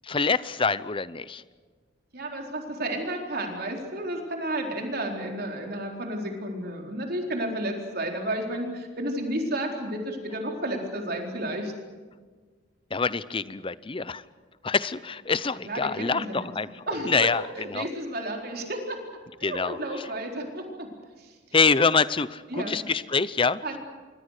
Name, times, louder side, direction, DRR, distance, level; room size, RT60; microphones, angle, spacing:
voice 1, 0.0-1.4 12.9-14.2 14.6-17.4 17.7-17.9 19.4-19.8 21.5-23.6, left 4 dB, 25° left, 16 dB, 0.7 m, -25 dB
voice 2, 2.1-11.7 15.5-16.5 16.9-19.0 19.4-20.9 21.2-21.4 22.5-22.8 23.6-23.8, right 1 dB, 50° right, 2 dB, 4.2 m, -32 dB
27.5 x 23.5 x 6.6 m, 1.5 s
head